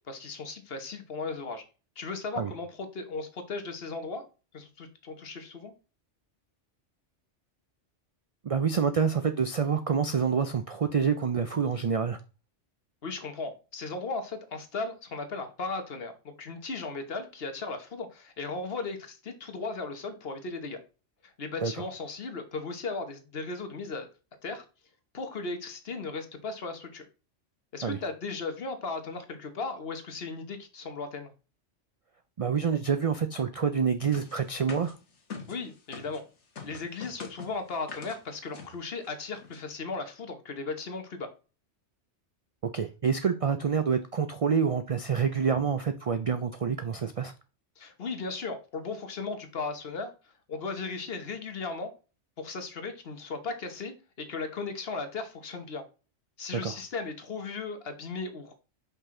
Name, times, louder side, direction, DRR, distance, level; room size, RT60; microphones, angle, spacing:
voice 1, 0.1-1.6 2.0-4.2 4.5-5.7 13.0-20.8 21.2-24.1 24.4-24.6 25.1-27.0 27.7-31.3 35.5-36.2 36.6-41.3 47.8-51.9 52.4-55.8 56.4-58.5, left 3 dB, 55° left, 1.3 m, -36 dB
voice 2, 8.4-12.2 21.6-21.7 27.8-28.0 32.4-34.9 42.6-47.3 56.5-56.7, right 6 dB, 60° right, 0.3 m, -27 dB
sound 1, 34.1-36.2 36.6-38.2 38.5-38.7 39.0-39.1 39.3-39.6, left 5 dB, 70° left, 1.6 m, -43 dB
5.9 x 5.4 x 3.7 m
omnidirectional pair, 1.2 m